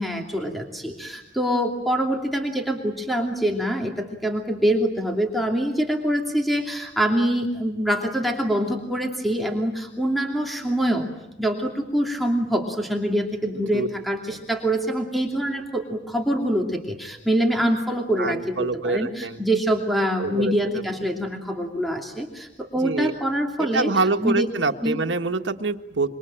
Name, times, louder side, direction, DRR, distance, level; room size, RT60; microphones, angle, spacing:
voice 1, 0.0-11.1 11.4-23.9 24.2-24.5 24.8-25.0, right 1 dB, ahead, 2 dB, 2.7 m, -25 dB
voice 2, 18.2-19.4 20.2-21.1 22.7-23.1 23.6-26.1, right 3 dB, 85° right, 6 dB, 1.5 m, -26 dB
26.5 x 24.5 x 8.8 m, 0.97 s
head